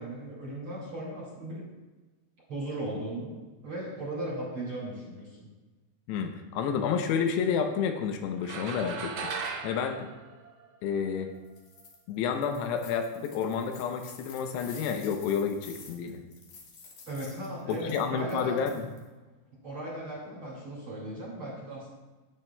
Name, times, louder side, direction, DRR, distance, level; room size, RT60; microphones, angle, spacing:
voice 1, 0.0-1.7 2.5-3.4 3.6-5.5 17.1-18.7 19.6-21.9, right 1 dB, 40° right, -5 dB, 2.0 m, -37 dB
voice 2, 6.1-9.1 9.6-10.1 10.8-11.3 12.1-16.2 17.7-18.9, left 7 dB, 80° left, 5 dB, 2.5 m, -30 dB
sound 1, 8.4-11.1, right 5 dB, 75° right, 2.8 m, -37 dB
sound 2, 11.4-12.0 12.3-19.1, left 4 dB, 60° left, 2.2 m, -50 dB
18.0 x 7.5 x 2.2 m, 1.2 s
omnidirectional pair, 5.5 m